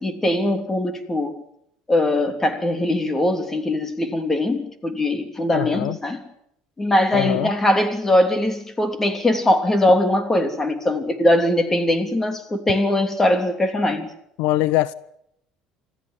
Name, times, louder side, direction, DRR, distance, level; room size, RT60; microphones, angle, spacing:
voice 1, 0.0-1.4 1.9-6.2 6.8-14.1, left 1 dB, 15° left, 3.2 m, -21 dB
voice 2, 5.5-6.0 7.1-7.5 14.4-14.9, left 16 dB, 80° left, 0.8 m, -22 dB
26.0 x 14.5 x 9.3 m
cardioid pair, 125°, 2 cm